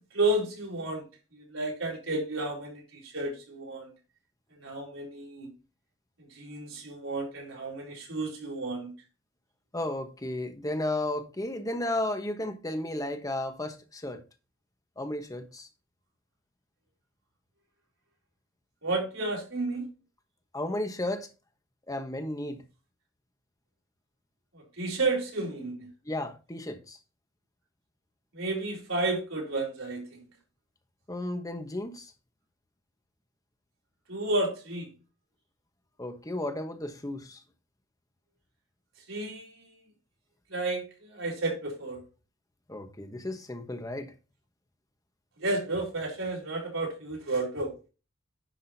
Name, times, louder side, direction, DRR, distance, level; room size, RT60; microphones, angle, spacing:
voice 1, 0.1-1.0 1.3-3.9 4.6-5.5 6.2-8.9 18.8-19.9 24.5-25.9 28.3-30.2 34.1-34.9 39.1-39.8 40.5-42.0 45.4-47.7, right 2 dB, 85° right, 4.3 m, -32 dB
voice 2, 9.7-14.2 15.0-15.7 20.5-21.3 21.9-22.6 26.0-27.0 31.1-32.1 36.0-37.4 42.7-44.1, left 1 dB, 20° left, 1.2 m, -33 dB
10.0 x 6.0 x 2.8 m
head